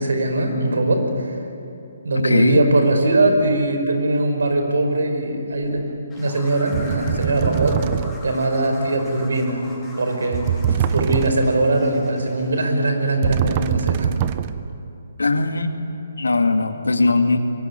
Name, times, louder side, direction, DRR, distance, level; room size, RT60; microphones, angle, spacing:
voice 1, 0.0-1.3 2.0-5.9 6.2-7.8 8.2-9.6 10.0-14.1, right 2 dB, 70° right, 5 dB, 5.2 m, -21 dB
voice 2, 2.1-2.6 15.2-15.7 16.2-17.4, left 3 dB, 80° left, 6 dB, 2.3 m, -19 dB
sound 1, 5.7-5.9 6.7-8.4 10.3-11.7 13.2-14.8, right 9 dB, 35° right, 0.9 m, -23 dB
sound 2, 6.1-12.8, left 2 dB, 10° left, 5.2 m, -42 dB
24.5 x 22.5 x 9.8 m, 2.8 s
figure-of-eight pair, 140°, 0 cm